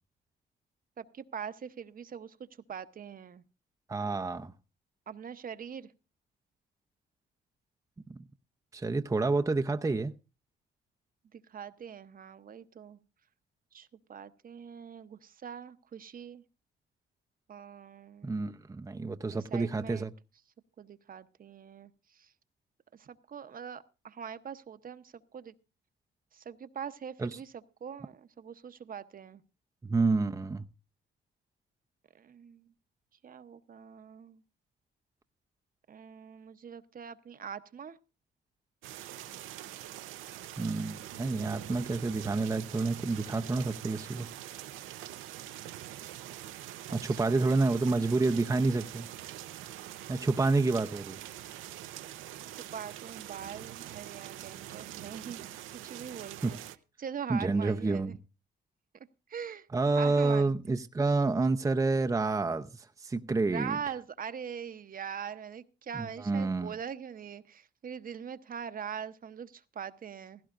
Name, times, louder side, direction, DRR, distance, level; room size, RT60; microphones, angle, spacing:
voice 1, 1.0-3.4 5.1-5.9 11.3-13.0 13.7-16.4 17.5-18.5 19.5-20.1 20.8-22.3 22.9-25.5 26.3-29.4 32.1-32.7 33.2-34.4 35.9-38.0 46.9-47.6 52.6-55.4 55.7-56.6 57.0-58.1 59.3-59.7 60.0-60.5 63.5-70.4, right 7 dB, 45° right, 0.8 m, -42 dB
voice 2, 3.9-4.5 8.7-10.1 18.2-20.1 27.2-27.4 29.8-30.6 40.6-44.3 46.9-49.1 50.1-51.2 56.4-56.5 57.3-58.2 59.7-63.8 66.2-66.7, right 3 dB, 15° right, 0.6 m, -29 dB
sound 1, 38.8-56.8, right 13 dB, 90° right, 0.7 m, -44 dB
16.5 x 15.5 x 2.5 m
cardioid pair, 90°, 20 cm